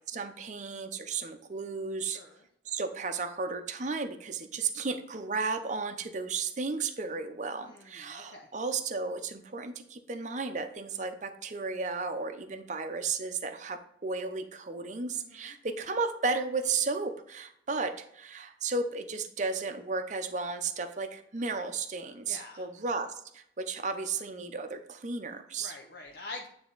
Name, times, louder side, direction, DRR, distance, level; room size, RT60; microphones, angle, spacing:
voice 1, 0.0-2.2 2.7-25.8, right 4 dB, 45° right, 7 dB, 0.6 m, -34 dB
voice 2, 2.0-2.4 7.5-8.5 15.1-15.6 22.3-22.6 25.6-26.5, left 2 dB, 65° left, 1 dB, 0.7 m, -46 dB
9.3 x 3.4 x 3.9 m, 0.71 s
head